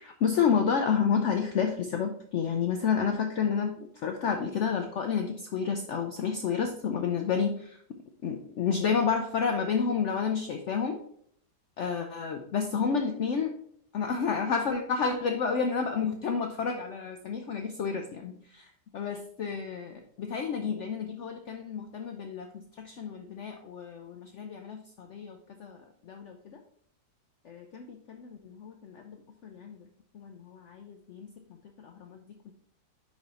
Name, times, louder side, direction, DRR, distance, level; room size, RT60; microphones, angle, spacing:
voice 1, 0.0-7.8 8.2-11.0 11.8-13.5 13.9-25.8 26.1-26.6 27.4-29.2 29.4-29.8 30.1-31.3 31.8-32.5, left 6 dB, 75° left, 5 dB, 0.6 m, -30 dB
5.2 x 4.8 x 4.1 m, 0.67 s
omnidirectional pair, 1.8 m